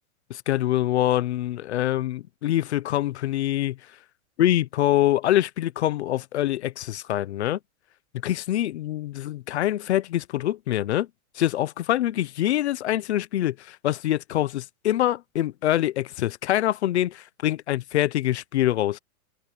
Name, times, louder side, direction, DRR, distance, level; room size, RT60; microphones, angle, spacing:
voice 1, 0.3-3.8 4.4-7.6 8.2-11.1 11.3-19.0, left 13 dB, 50° left, 0.8 m, -25 dB
supercardioid pair, 175°, 44 cm